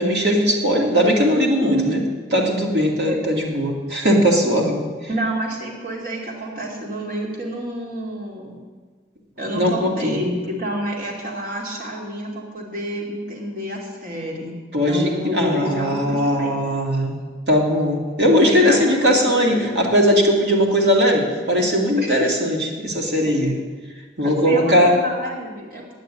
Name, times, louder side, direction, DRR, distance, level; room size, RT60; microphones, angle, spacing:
voice 1, 0.0-2.0 2.3-4.8 9.6-10.3 14.7-17.2 17.5-23.5 24.2-24.9, equal, 70° right, -1 dB, 2.4 m, -19 dB
voice 2, 1.6-2.1 3.1-3.3 5.1-8.6 9.4-14.6 14.8-16.5 18.5-19.8 22.0-22.1 23.3-23.5 24.2-25.8, equal, 50° right, -2 dB, 2.6 m, -28 dB
9.2 x 9.1 x 8.9 m, 1.4 s
head